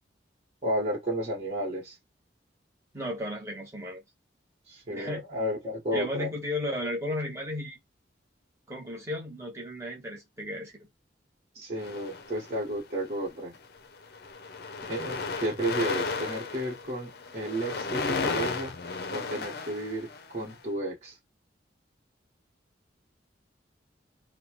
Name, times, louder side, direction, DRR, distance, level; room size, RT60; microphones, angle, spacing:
voice 1, 0.6-2.0 4.7-6.3 11.5-13.6 14.8-18.8 19.1-21.2, right 1 dB, 35° right, 1.3 m, -32 dB
voice 2, 2.9-4.0 4.9-5.2 5.9-7.8 8.7-10.7, left 1 dB, 15° right, 1.2 m, -34 dB
sound 1, 11.8-12.8 13.5-13.8 14.0-20.5, left 4 dB, 55° left, 0.5 m, -34 dB
3.0 x 2.2 x 3.0 m
head